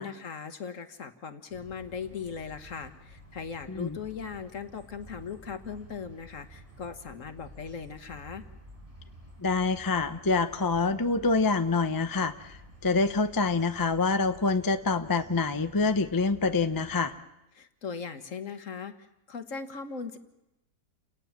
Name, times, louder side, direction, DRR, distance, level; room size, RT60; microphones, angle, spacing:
voice 1, 0.0-8.4 17.5-20.2, left 6 dB, 60° left, 9 dB, 1.7 m, -39 dB
sound 1, 1.5-17.0, right 1 dB, 20° right, 5.8 m, -51 dB
voice 2, 9.4-17.1, left 3 dB, 20° left, 9 dB, 0.6 m, -26 dB
29.0 x 18.5 x 7.4 m, 0.93 s
omnidirectional pair, 1.6 m